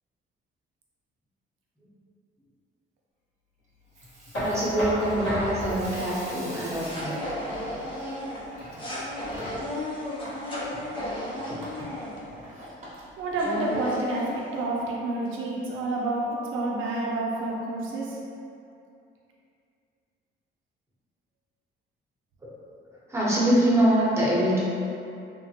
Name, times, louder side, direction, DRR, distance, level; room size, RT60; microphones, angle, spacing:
Water tap faucet / Sink (filling or washing), 3.8-14.0, equal, 35° right, 0.8 m, -45 dB
Knock, 4.3-10.1, equal, 75° left, 1.2 m, -34 dB
voice 1, 4.4-7.3 23.1-24.6, right 1 dB, 15° right, -8 dB, 0.9 m, -24 dB
sound 1, 5.0-12.5 13.0-13.1 13.3-14.6, left 1 dB, 25° left, 0.6 m, -35 dB
voice 2, 13.2-18.2, right 2 dB, 85° right, -3 dB, 0.5 m, -29 dB
3.1 x 2.1 x 2.8 m, 2.6 s
cardioid pair, 90°, 20 cm